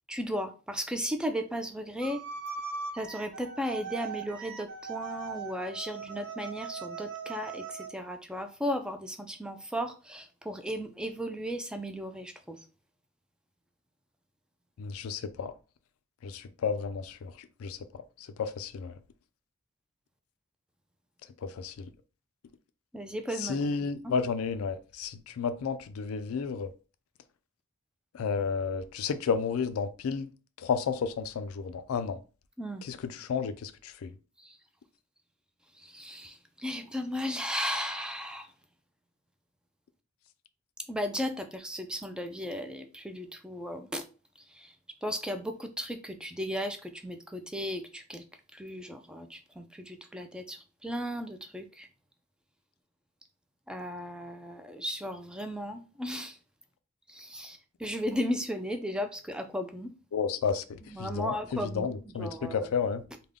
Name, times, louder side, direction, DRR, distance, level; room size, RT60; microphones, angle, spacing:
voice 1, 0.1-2.2 2.9-7.6 7.9-12.6 22.9-23.6 24.0-24.1 32.6-32.8 35.9-36.3 36.6-38.5 40.9-44.0 45.0-48.2 48.5-50.6 50.8-51.9 53.7-56.3 57.1-59.9 60.9-61.9 62.2-62.7, equal, 5° right, 0.3 m, -35 dB
sound 1, 2.0-7.9, right 5 dB, 55° right, 0.6 m, -40 dB
voice 2, 14.8-15.5 16.2-17.3 17.6-17.8 18.4-18.9 21.4-21.9 23.4-26.7 28.1-30.3 30.6-32.2 32.8-34.1 60.1-60.6 61.0-63.0, left 5 dB, 80° left, 0.4 m, -32 dB
3.4 x 2.1 x 3.6 m
head